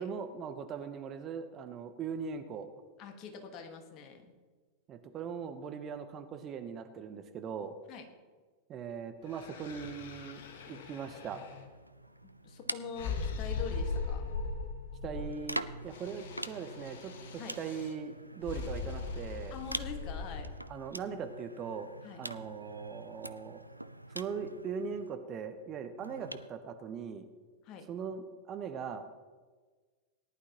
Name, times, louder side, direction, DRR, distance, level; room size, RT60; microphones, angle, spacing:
voice 1, 0.0-2.7 4.9-7.7 8.7-10.4 10.7-11.4 15.0-19.5 20.7-21.9 22.2-23.6 24.1-27.2 27.9-29.0, right 6 dB, 30° right, 8 dB, 1.0 m, -40 dB
voice 2, 3.0-4.3 7.9-8.0 12.4-14.3 17.4-17.6 19.5-20.5 22.0-22.2 27.6-27.9, left 5 dB, 40° left, 5 dB, 1.7 m, -44 dB
sound 1, 9.3-11.7 13.0-15.5 15.8-17.9 18.4-20.5, left 4 dB, 55° left, 1.3 m, -39 dB
sound 2, 11.0-14.2 15.1-25.1 26.0-26.5, right 1 dB, 85° right, 0.4 m, -45 dB
18.5 x 11.0 x 3.0 m, 1.4 s
figure-of-eight pair, 90°, 0 cm